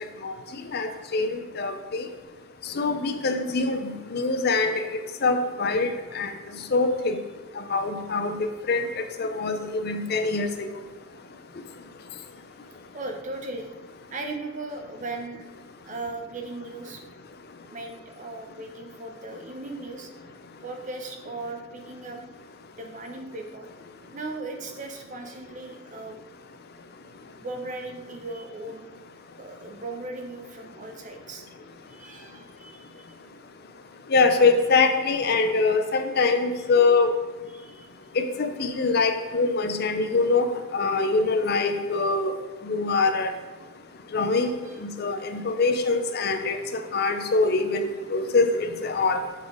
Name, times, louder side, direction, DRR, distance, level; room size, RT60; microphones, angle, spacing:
voice 1, 0.7-2.0 2.8-4.8 5.2-6.3 6.7-7.2 7.7-8.4 8.7-8.8 9.2-10.5 34.1-37.1 38.2-42.3 42.7-43.3 44.1-46.6 46.9-49.2, left 3 dB, 50° left, 8 dB, 0.5 m, -24 dB
voice 2, 12.9-13.7 14.1-15.5 15.8-17.1 17.7-20.1 20.6-22.2 22.8-23.7 24.1-26.2 27.4-28.9 29.4-31.4 31.9-33.1 37.5-37.9 44.6-44.8, right 2 dB, 35° right, 4 dB, 0.8 m, -37 dB
7.3 x 3.9 x 4.8 m, 1.3 s
head